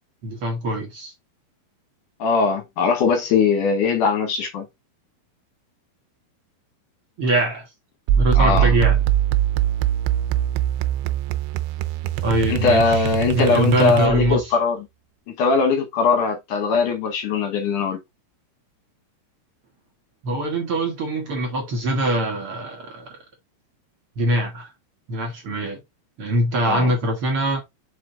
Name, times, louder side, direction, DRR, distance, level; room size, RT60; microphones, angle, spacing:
voice 1, 0.2-1.1 7.2-7.7 8.2-9.0 12.2-14.6 20.2-23.1 24.2-24.7 25.1-25.8 26.2-27.6, right 1 dB, 65° right, 1.3 m, -23 dB
voice 2, 2.2-4.6 8.4-8.7 12.5-14.8 15.4-18.0 26.6-26.9, left 5 dB, 70° left, 2.1 m, -20 dB
sound 1, 8.1-14.4, right 11 dB, 80° right, 2.6 m, -22 dB
5.8 x 5.0 x 3.7 m
omnidirectional pair, 4.7 m